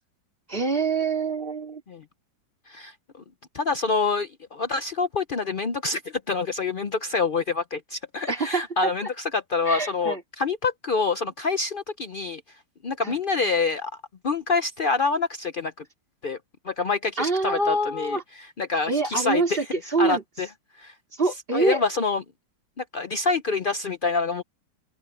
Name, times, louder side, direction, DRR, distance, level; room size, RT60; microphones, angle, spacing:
voice 1, 0.5-1.8 8.3-9.1 9.7-10.2 13.0-13.2 17.2-18.2 18.9-20.2 21.2-21.8, right 3 dB, 30° right, 3.4 m, -25 dB
voice 2, 3.5-9.1 9.3-12.4 12.8-13.9 14.2-15.8 16.2-16.4 16.6-18.2 18.6-19.4 20.0-20.5 20.8-20.9 21.5-22.2 22.8-24.4, left 4 dB, 80° left, 0.4 m, -26 dB
omnidirectional pair, 2.0 m